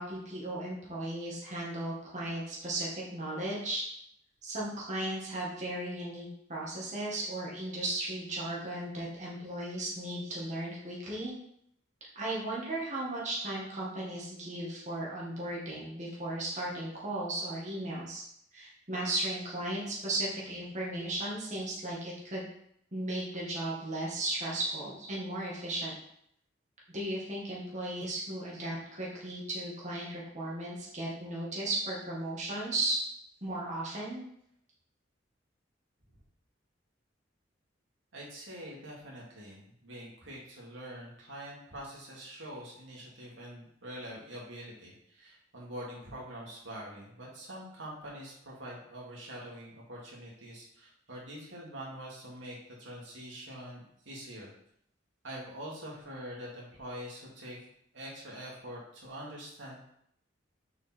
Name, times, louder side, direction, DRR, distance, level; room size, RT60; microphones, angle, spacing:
voice 1, 0.0-3.8 4.4-11.3 12.2-18.2 18.5-22.4 22.9-25.9 26.9-33.0 33.4-34.2, right 1 dB, 40° right, -5 dB, 2.0 m, -36 dB
voice 2, 38.1-54.5 55.2-57.6 57.9-59.8, equal, 90° right, -4 dB, 2.5 m, -45 dB
6.7 x 5.4 x 4.5 m, 0.71 s
head